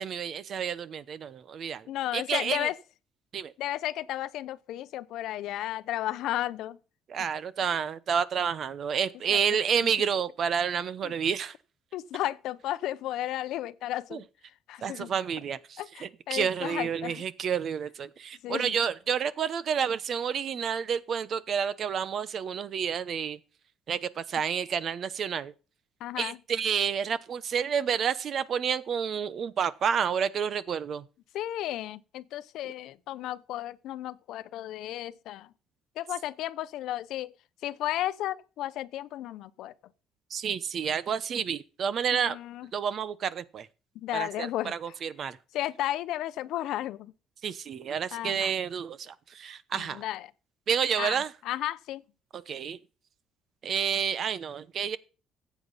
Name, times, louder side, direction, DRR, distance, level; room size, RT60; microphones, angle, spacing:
voice 1, 0.0-2.7 3.3-3.5 7.1-11.5 14.1-14.2 14.8-23.4 23.9-25.5 26.2-31.0 40.3-42.4 42.7-43.7 44.1-45.4 47.4-50.0 50.7-51.3 52.3-52.8 53.6-55.0, right 7 dB, 50° right, 0.9 m, -30 dB
voice 2, 1.9-2.8 3.6-6.8 9.3-9.4 9.8-9.9 11.0-11.1 11.9-14.3 14.7-15.1 15.8-17.2 18.4-18.8 26.0-26.4 31.3-35.5 36.0-37.3 37.6-39.7 42.1-42.7 44.0-44.7 45.5-47.1 48.1-48.5 49.7-50.3 51.0-52.0, left 13 dB, 75° left, 0.7 m, -33 dB
14.5 x 8.4 x 4.1 m
cardioid pair, 120°, 0 cm